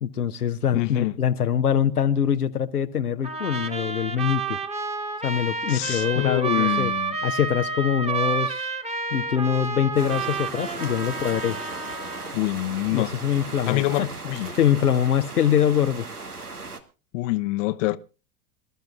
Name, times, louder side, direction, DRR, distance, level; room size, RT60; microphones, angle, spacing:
voice 1, 0.0-4.6 5.2-6.9 7.2-8.7 9.1-11.6 12.9-14.1 14.6-16.1, left 8 dB, 85° left, 0.9 m, -24 dB
voice 2, 0.7-1.1 5.7-7.2 12.3-13.1 13.7-14.5 17.1-18.0, left 18 dB, 55° left, 0.9 m, -26 dB
Trumpet, 3.2-12.4, right 4 dB, 15° right, 1.6 m, -30 dB
sound 1, 10.0-16.8, right 3 dB, 90° right, 1.6 m, -37 dB
26.5 x 13.0 x 2.4 m
figure-of-eight pair, 80°, 44 cm